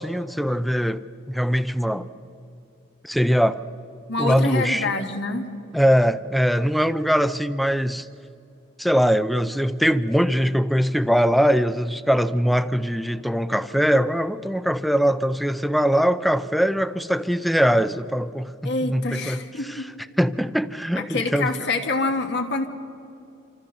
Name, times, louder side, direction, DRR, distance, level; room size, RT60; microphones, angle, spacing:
voice 1, 0.0-2.1 3.0-3.6 4.2-4.9 5.7-8.1 8.8-19.9 20.2-21.5, equal, ahead, 0.4 m, -22 dB
voice 2, 4.1-5.5 18.6-19.9 20.9-22.7, left 3 dB, 55° left, 1.4 m, -26 dB
26.5 x 14.5 x 6.7 m
head